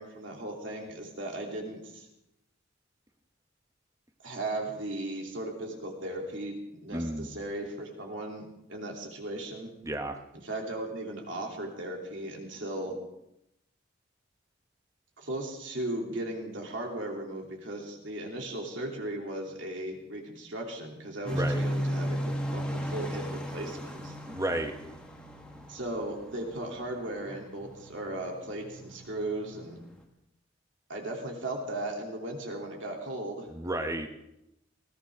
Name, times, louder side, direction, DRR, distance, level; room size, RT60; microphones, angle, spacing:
voice 1, 0.0-2.1 4.2-9.7 10.4-13.0 15.2-24.1 25.7-29.8 30.9-33.5, right 1 dB, 70° right, 0 dB, 3.0 m, -37 dB
voice 2, 6.9-7.3 9.8-10.2 21.3-21.6 24.3-24.7 33.5-34.2, right 1 dB, 15° right, 6 dB, 1.0 m, -32 dB
sound 1, 21.3-30.0, equal, 5° left, 1.6 m, -36 dB
20.0 x 15.5 x 3.6 m, 0.84 s
head